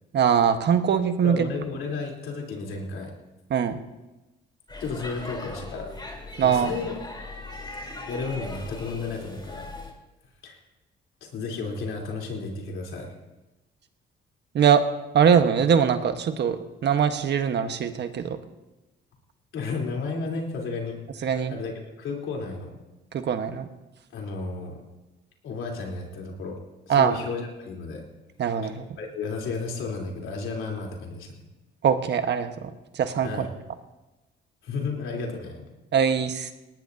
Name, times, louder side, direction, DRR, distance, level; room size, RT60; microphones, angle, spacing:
voice 1, 0.1-1.5 3.5-3.8 6.4-6.7 14.5-14.8 15.1-18.4 21.2-21.5 23.1-23.7 26.9-27.2 28.4-28.9 31.8-33.5 35.9-36.5, right 7 dB, 60° right, 8 dB, 1.3 m, -22 dB
voice 2, 1.2-3.1 4.8-5.9 6.4-6.9 8.1-9.7 10.4-10.6 11.2-13.2 19.5-22.8 24.1-24.8 25.4-26.6 26.9-28.0 29.0-31.4 33.2-33.5 34.6-35.7, left 4 dB, 80° left, 0 dB, 3.6 m, -33 dB
Speech / Shout / Subway metro underground, 4.7-9.9, left 2 dB, 20° left, 3.6 m, -39 dB
19.0 x 18.5 x 2.8 m, 1.0 s
cardioid pair, 90°, 20 cm